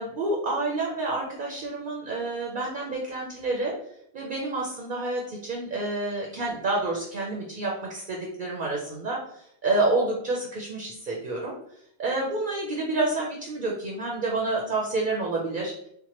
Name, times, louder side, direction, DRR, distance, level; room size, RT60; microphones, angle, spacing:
voice 1, 0.0-3.7 4.1-11.6 12.0-15.7, right 2 dB, 55° right, -1 dB, 0.7 m, -29 dB
4.5 x 2.1 x 2.9 m, 0.70 s
omnidirectional pair, 1.1 m